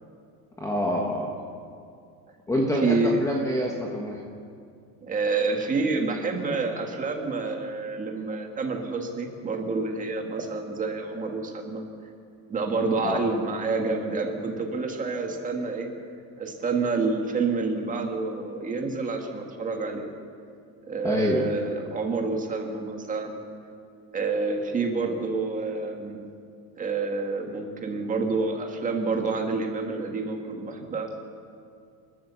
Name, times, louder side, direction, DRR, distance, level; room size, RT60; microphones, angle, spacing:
voice 1, 0.6-1.3 2.5-4.2 13.0-13.2 21.0-21.4, left 1 dB, 5° left, -1 dB, 1.2 m, -26 dB
voice 2, 2.8-3.2 5.0-11.8 12.5-15.9 16.4-20.1 20.9-23.4 24.1-26.2 26.8-31.1, right 3 dB, 15° right, 3 dB, 1.8 m, -28 dB
28.5 x 13.0 x 7.0 m, 2.4 s
cardioid pair, 180°, 46 cm